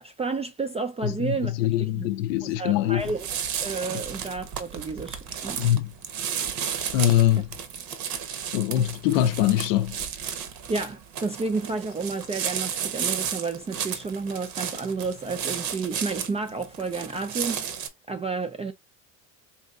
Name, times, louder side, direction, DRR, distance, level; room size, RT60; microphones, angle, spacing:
voice 1, 0.0-1.5 1.9-2.1 2.4-3.3 3.6-5.6 10.7-17.6 18.1-18.7, right 4 dB, 15° right, 0.4 m, -31 dB
voice 2, 1.0-3.0 5.5-5.9 6.9-7.5 8.5-10.0, left 12 dB, 80° left, 0.5 m, -23 dB
sound 1, 3.0-17.9, right 8 dB, 60° right, 0.9 m, -33 dB
4.1 x 2.6 x 2.3 m
hypercardioid pair, 70°, 39 cm